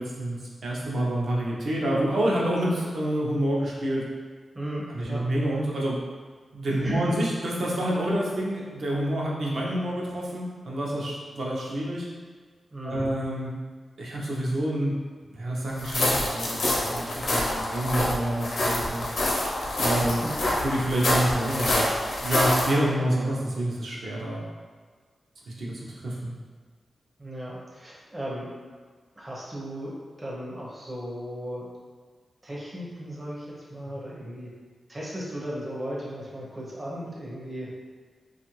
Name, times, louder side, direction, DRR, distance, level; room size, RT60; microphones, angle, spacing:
voice 1, 0.0-4.1 4.9-6.0 6.5-12.1 12.8-13.5 14.0-14.9 15.3-19.1 19.8-20.2 20.6-21.9 22.2-24.4 25.5-25.7 26.0-26.3, right 1 dB, 70° right, -4 dB, 0.6 m, -28 dB
voice 2, 4.5-5.2 6.8-7.1 12.7-13.1 20.0-20.3 27.2-28.5 29.2-31.7 32.4-34.5 34.9-37.7, right 1 dB, 25° right, -6 dB, 0.5 m, -36 dB
sound 1, 15.8-22.7, left 1 dB, 70° left, 0.6 m, -26 dB
2.6 x 2.4 x 2.9 m, 1.5 s
wide cardioid pair, 120°, 0 cm